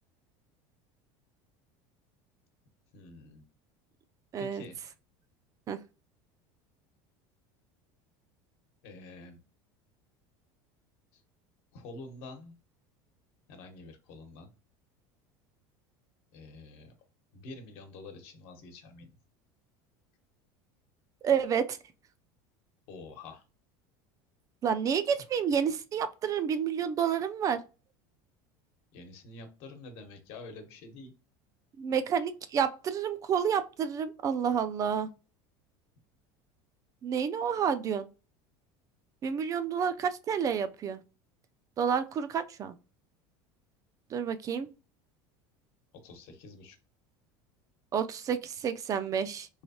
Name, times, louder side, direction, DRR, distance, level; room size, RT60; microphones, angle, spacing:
voice 1, 2.9-3.4 4.4-4.8 8.8-9.4 11.1-11.2 11.7-12.5 13.5-14.5 16.3-16.9 17.3-19.1 22.9-23.4 28.9-31.1 46.0-46.8, left 3 dB, 65° left, 1.0 m, -47 dB
voice 2, 4.3-4.6 5.7-5.8 21.2-21.8 24.6-27.6 31.8-35.1 37.0-38.1 39.2-41.0 41.8-42.8 44.1-44.7 47.9-49.5, right 7 dB, 30° right, 0.3 m, -29 dB
3.4 x 3.2 x 2.7 m
supercardioid pair, 130°, 11 cm